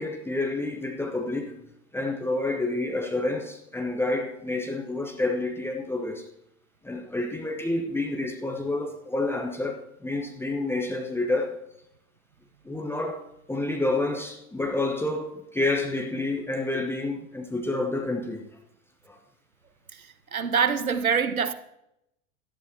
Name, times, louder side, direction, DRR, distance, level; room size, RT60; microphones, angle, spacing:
voice 1, 0.0-1.6 1.9-6.2 6.8-11.6 12.6-18.4 19.1-19.2, left 2 dB, 5° left, 1.0 m, -29 dB
voice 2, 20.3-21.5, right 6 dB, 85° right, 1.0 m, -24 dB
17.5 x 12.0 x 2.9 m
figure-of-eight pair, 90°, 41 cm